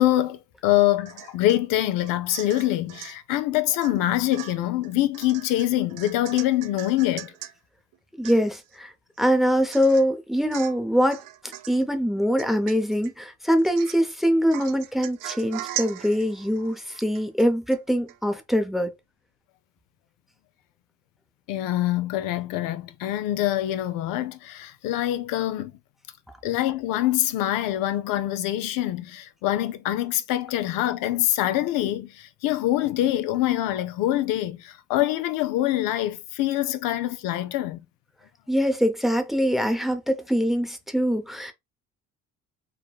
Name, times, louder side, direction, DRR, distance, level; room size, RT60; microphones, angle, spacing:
voice 1, 0.0-7.3 21.5-25.7 26.4-37.8, left 14 dB, 80° left, 0.5 m, -25 dB
Domestic sounds home sounds / Chink clink / Drip, 1.1-1.6 2.0-3.2 3.8-4.0 4.3-7.5 7.9-8.0 8.2-8.8 9.2-9.3 9.7-10.1 10.5-10.8 11.1-11.8 12.4-13.1 13.6-14.1 14.5-17.8 18.1-18.2, right 12 dB, 70° right, 0.5 m, -39 dB
voice 2, 8.2-8.9 9.2-11.2 11.7-18.9 38.5-41.5, equal, ahead, 0.6 m, -23 dB
3.3 x 2.1 x 2.3 m
supercardioid pair, 75°, 33 cm